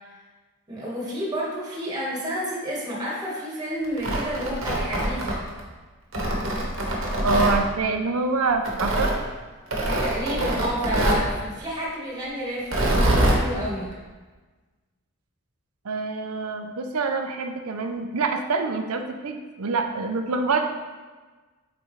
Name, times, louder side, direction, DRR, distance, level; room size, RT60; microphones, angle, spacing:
voice 1, 0.7-5.4 9.9-13.9, equal, 20° right, -5 dB, 1.4 m, -30 dB
Tearing, 3.8-5.6 6.1-7.6 8.7-9.2 9.7-11.3 12.6-13.4, right 1 dB, 65° right, 1.1 m, -24 dB
voice 2, 7.2-9.1 15.8-20.7, right 4 dB, 90° right, 6 dB, 0.6 m, -26 dB
8.4 x 3.8 x 3.1 m, 1.3 s
head